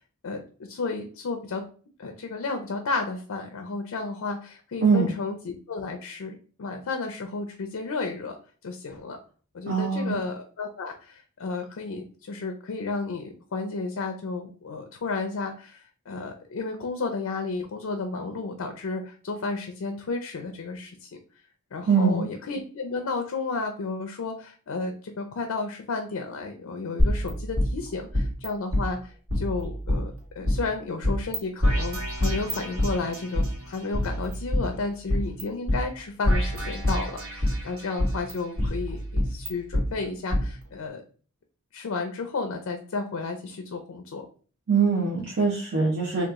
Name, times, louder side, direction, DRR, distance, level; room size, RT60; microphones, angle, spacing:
voice 1, 0.7-1.6 2.0-8.4 8.6-9.2 9.5-21.1 21.7-41.0 41.7-44.3, left 3 dB, 75° left, 5 dB, 0.4 m, -32 dB
voice 2, 9.7-10.2 21.9-22.3 44.7-46.3, right 5 dB, 55° right, -3 dB, 0.7 m, -22 dB
sound 1, 27.0-28.5 28.7-28.8 29.3-30.6 31.0-31.4 31.6-33.5 33.9-35.4 35.7-35.8 36.3-37.6 38.0-39.8 40.3-40.4, left 1 dB, 80° right, 1.4 m, -26 dB
2.9 x 2.3 x 3.5 m, 0.40 s
head